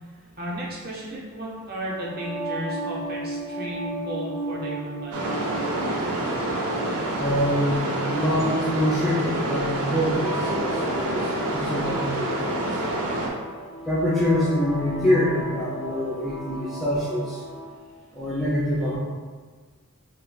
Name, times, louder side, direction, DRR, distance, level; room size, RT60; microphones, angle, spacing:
voice 1, 0.4-5.2, equal, 45° right, -4 dB, 0.6 m, -34 dB
sound 1, 1.9-17.8, right 1 dB, 65° left, 0.5 m, -35 dB
sound 2, 5.1-13.3, right 1 dB, 90° right, 0.5 m, -28 dB
voice 2, 7.2-7.8 8.1-12.6 13.9-17.4 18.1-19.0, equal, ahead, -9 dB, 0.3 m, -25 dB
2.3 x 2.1 x 3.9 m, 1.4 s
head